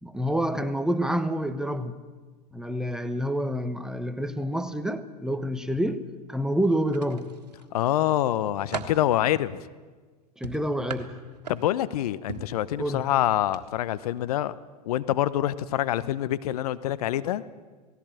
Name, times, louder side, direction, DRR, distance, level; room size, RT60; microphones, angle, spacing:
voice 1, 0.0-2.0 2.5-6.0 6.3-7.4 10.4-11.1 12.8-13.1, equal, 5° right, 1.2 m, -28 dB
sound 1, 6.9-7.7 8.2-9.1 10.4-11.9 12.3-12.6 13.4-13.6 14.0-14.2, right 6 dB, 85° right, 1.7 m, -38 dB
voice 2, 7.7-9.6 11.5-14.5 14.8-17.4, left 13 dB, 65° left, 0.8 m, -26 dB
18.0 x 16.0 x 9.0 m
hypercardioid pair, 100°, 20 cm